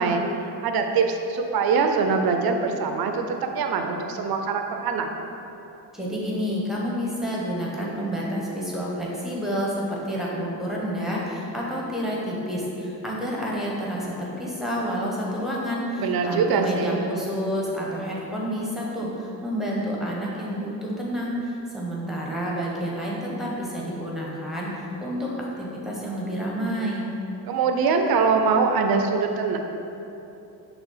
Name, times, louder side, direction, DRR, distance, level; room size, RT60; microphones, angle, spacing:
voice 1, 0.0-5.1 16.0-17.0 27.5-29.6, right 5 dB, 60° right, 4 dB, 0.6 m, -23 dB
voice 2, 5.9-24.7 25.0-27.1, equal, ahead, -4 dB, 1.0 m, -29 dB
6.0 x 3.5 x 5.6 m, 2.9 s
wide cardioid pair, 145°, 41 cm